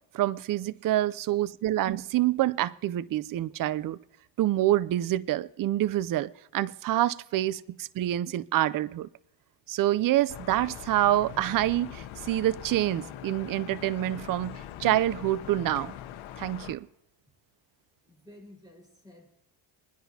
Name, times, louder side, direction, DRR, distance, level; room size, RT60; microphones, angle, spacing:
voice 1, 0.1-4.0 4.4-7.6 7.9-9.1 9.7-15.9 16.4-16.9, right 14 dB, 45° right, 0.5 m, -27 dB
sound 1, 10.3-16.7, left 11 dB, 80° left, 1.1 m, -42 dB
voice 2, 18.0-19.3, left 1 dB, 10° right, 4.5 m, -52 dB
22.5 x 10.0 x 2.8 m
cardioid pair, 85°, 47 cm